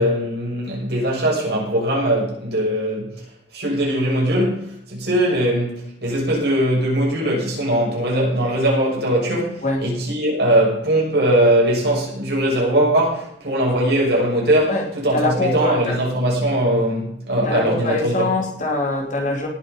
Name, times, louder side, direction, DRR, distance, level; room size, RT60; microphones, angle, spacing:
voice 1, 0.0-3.2 3.5-18.2, right 1 dB, 55° right, 6.8 m, -20 dB
voice 2, 15.1-16.0 17.4-19.5, left 2 dB, 40° left, 2.8 m, -23 dB
18.5 x 7.7 x 5.4 m
head